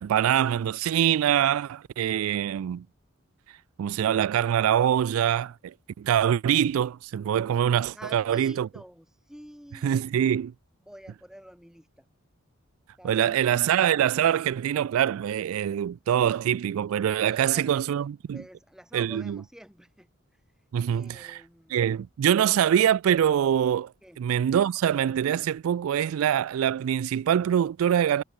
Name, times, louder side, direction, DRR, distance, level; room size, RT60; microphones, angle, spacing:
voice 1, 0.0-2.8 3.8-8.7 9.8-10.5 13.0-18.4 18.9-19.4 20.7-21.4 21.7-23.9 24.2-28.2, right 9 dB, 80° right, 0.3 m, -24 dB
voice 2, 7.9-10.1 10.8-12.1 13.0-13.6 17.2-17.9 18.3-20.1 20.9-21.9 24.0-24.2, equal, 5° right, 3.8 m, -48 dB
head